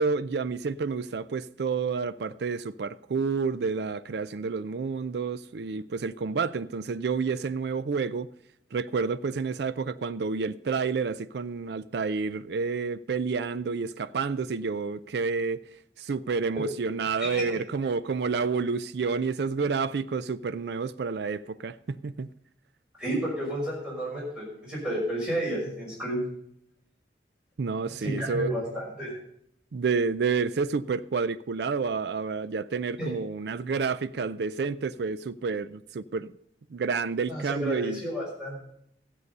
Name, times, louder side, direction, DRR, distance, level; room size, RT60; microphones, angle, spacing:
voice 1, 0.0-8.3 8.7-15.6 16.0-22.3 27.6-28.5 29.7-36.3 36.7-38.0, right 5 dB, 65° right, 0.4 m, -29 dB
voice 2, 17.0-17.6 23.0-26.2 28.0-29.2 33.0-33.1 37.3-38.6, right 1 dB, 5° right, 5.9 m, -31 dB
14.0 x 8.2 x 5.3 m
head